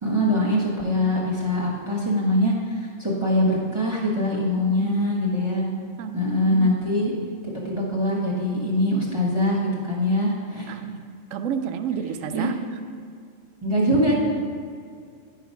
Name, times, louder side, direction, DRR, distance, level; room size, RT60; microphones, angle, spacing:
voice 1, 0.0-2.5 3.0-5.6 6.1-7.1 7.6-9.6 9.9-10.7 12.3-12.5 13.6-14.1, left 1 dB, 20° right, -5 dB, 1.3 m, -23 dB
voice 2, 4.7-5.1 6.0-6.8 10.7-11.0 11.3-12.5, right 8 dB, 75° right, 8 dB, 1.0 m, -31 dB
10.5 x 4.8 x 5.6 m, 2.2 s
omnidirectional pair, 1.4 m